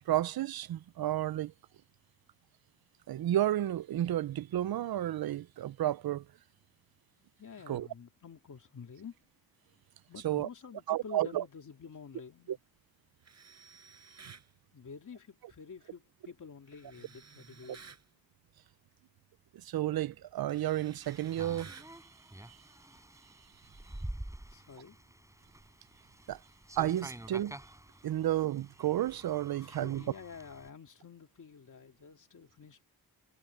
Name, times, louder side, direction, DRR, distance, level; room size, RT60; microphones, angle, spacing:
voice 1, 0.1-1.5 3.1-6.2 7.7-7.9 10.2-10.5 10.9-11.4 19.7-21.7 26.3-26.4 26.8-27.6 28.0-30.0, right 13 dB, 75° right, 0.6 m, -31 dB
voice 2, 7.2-9.2 10.1-12.6 14.7-17.8 24.5-25.0 29.6-32.8, left 6 dB, 55° left, 2.7 m, -49 dB
Tools, 13.2-14.5 16.7-18.1 19.6-19.8 20.1-22.0, right 5 dB, 45° right, 8.0 m, -55 dB
sound 1, 21.0-30.7, right 1 dB, 10° right, 7.0 m, -48 dB
wide cardioid pair, 140°, 36 cm